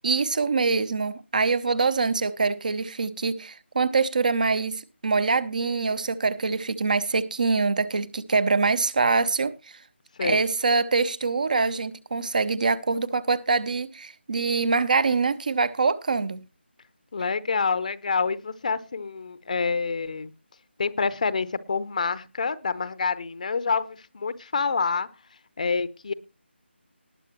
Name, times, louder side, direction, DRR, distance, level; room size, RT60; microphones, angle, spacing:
voice 1, 0.0-9.8 10.2-16.4, right 4 dB, 40° right, 0.8 m, -24 dB
voice 2, 17.1-20.3 20.8-25.1 25.6-26.1, left 5 dB, 40° left, 0.9 m, -27 dB
19.5 x 8.1 x 3.0 m
figure-of-eight pair, 160°, 6 cm